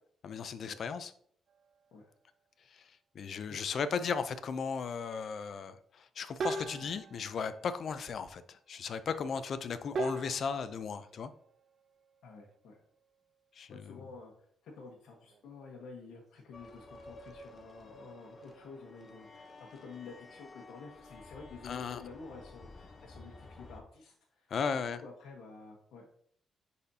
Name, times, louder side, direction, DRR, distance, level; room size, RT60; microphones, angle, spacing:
voice 1, 0.2-1.1 2.7-2.8 3.1-11.3 13.6-14.0 21.6-22.0 24.5-25.0, left 6 dB, 55° left, 12 dB, 0.5 m, -36 dB
sound 1, 1.5-2.4 6.4-8.5 9.9-13.3 13.7-13.9 14.8-16.2 16.5-16.9, right 3 dB, 55° right, 0.4 m, -43 dB
voice 2, 12.2-12.8 13.7-14.3 14.6-24.5 24.9-26.1, left 4 dB, 85° left, -3 dB, 1.2 m, -50 dB
sound 2, 16.5-23.8, left 2 dB, 30° left, 0.9 m, -52 dB
10.0 x 4.2 x 2.8 m, 0.64 s
cardioid pair, 105°, 0 cm